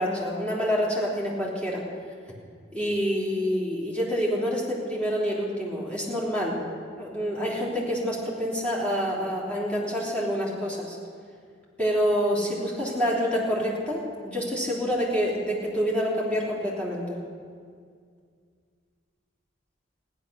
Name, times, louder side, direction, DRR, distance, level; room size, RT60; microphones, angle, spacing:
voice 1, 0.0-1.8 2.7-6.6 7.0-11.0 11.8-17.2, equal, 5° left, -6 dB, 3.4 m, -27 dB
15.5 x 11.0 x 6.9 m, 2.1 s
head